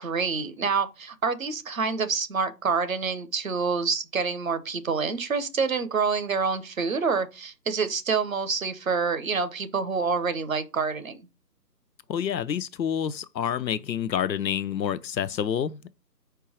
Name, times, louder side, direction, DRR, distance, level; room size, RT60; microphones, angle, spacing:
voice 1, 0.0-11.2, right 5 dB, 55° right, 0.9 m, -27 dB
voice 2, 12.1-15.9, left 8 dB, 90° left, 0.6 m, -28 dB
4.6 x 4.6 x 4.9 m
figure-of-eight pair, 165°, 50 cm